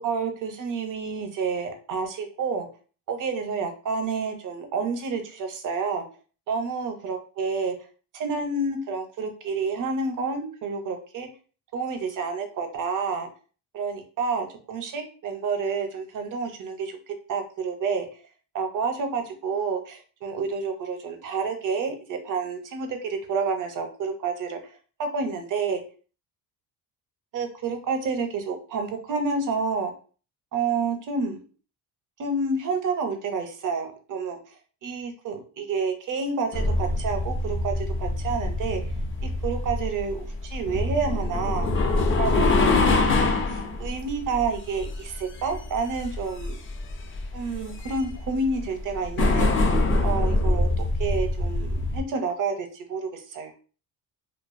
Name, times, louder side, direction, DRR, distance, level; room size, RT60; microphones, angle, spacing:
voice 1, 0.0-2.7 3.1-6.0 6.5-7.7 8.1-11.3 11.7-13.3 13.7-17.0 17.3-18.1 18.5-24.6 25.0-25.8 27.3-29.9 30.5-31.4 32.2-34.4 34.8-38.8 39.4-41.7 42.2-42.9 43.5-46.6 47.3-49.5 50.0-53.5, right 4 dB, 50° right, 6 dB, 0.6 m, -29 dB
sound 1, 36.5-52.0, left 2 dB, 30° left, 0.4 m, -25 dB
2.5 x 2.3 x 2.4 m, 0.39 s
cardioid pair, 125°, 41 cm